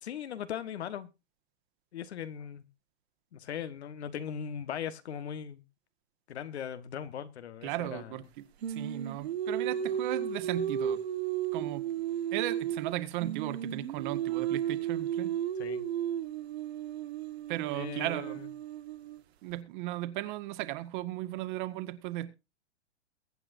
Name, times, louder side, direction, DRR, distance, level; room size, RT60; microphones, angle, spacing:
voice 1, 0.0-1.1 1.9-2.7 3.3-5.6 6.3-8.2 15.6-15.8 17.7-18.5, left 8 dB, 70° left, 11 dB, 1.6 m, -39 dB
voice 2, 7.6-8.2 8.7-11.0 11.5-11.8 12.3-15.3 17.5-18.4 19.4-22.3, right 15 dB, 45° right, 10 dB, 1.7 m, -36 dB
Singing, 8.6-12.9 13.2-19.2, right 9 dB, 65° right, 1.9 m, -34 dB
22.5 x 8.9 x 2.7 m, 0.27 s
hypercardioid pair, 130°, 34 cm